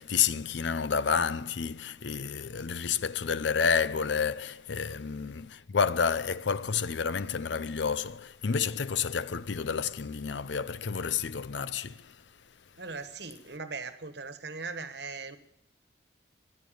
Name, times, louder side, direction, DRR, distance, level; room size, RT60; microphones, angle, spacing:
voice 1, 0.0-12.2, left 6 dB, 75° left, 0.6 m, -30 dB
voice 2, 12.8-15.4, right 4 dB, 65° right, 1.3 m, -39 dB
14.5 x 11.0 x 8.6 m
head